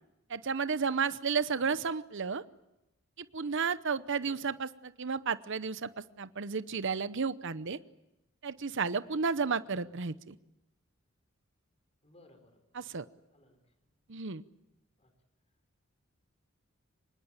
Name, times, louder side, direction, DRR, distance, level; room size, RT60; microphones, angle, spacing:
voice 1, 0.3-2.4 3.3-5.9 6.2-7.8 8.4-10.4 12.7-13.0 14.1-14.4, right 5 dB, 65° right, 14 dB, 0.9 m, -32 dB
voice 2, 12.0-12.6 13.3-13.9 15.0-15.1, left 1 dB, 30° left, 7 dB, 4.9 m, -60 dB
25.5 x 20.0 x 8.9 m, 0.91 s
head